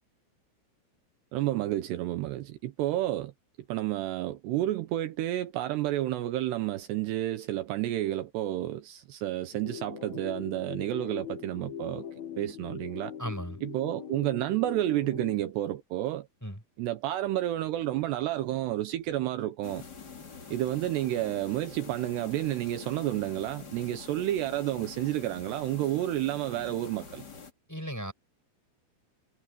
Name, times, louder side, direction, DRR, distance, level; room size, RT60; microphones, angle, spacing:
voice 1, 1.3-3.3 3.7-12.1 12.4-13.1 13.6-16.3 16.8-19.8 20.5-27.2, right 14 dB, 75° right, 3.0 m, -30 dB
sound 1, 9.5-15.5, left 9 dB, 70° left, 1.8 m, -42 dB
voice 2, 13.2-13.6 16.4-16.6 27.7-28.1, equal, 5° left, 5.9 m, -35 dB
sound 2, 19.6-27.5, left 5 dB, 30° left, 2.3 m, -46 dB
omnidirectional pair, 5.1 m